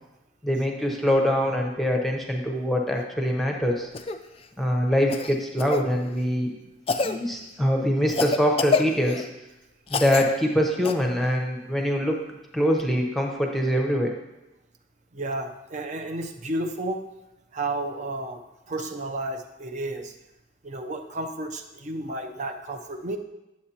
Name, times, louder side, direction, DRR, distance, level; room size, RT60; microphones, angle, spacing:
voice 1, 0.4-3.9 4.6-6.5 7.0-9.3 9.9-12.2 12.5-14.2, equal, ahead, 1 dB, 0.7 m, -24 dB
Cough, 3.9-4.2 5.1-5.8 6.9-7.2 8.1-9.3 9.9-10.3 10.8-10.9 12.8-12.9, left 4 dB, 30° left, 0.3 m, -27 dB
voice 2, 15.1-17.0 17.5-18.4 18.7-20.1 20.6-23.2, right 2 dB, 35° right, 5 dB, 0.6 m, -32 dB
10.0 x 7.5 x 2.8 m, 0.98 s
head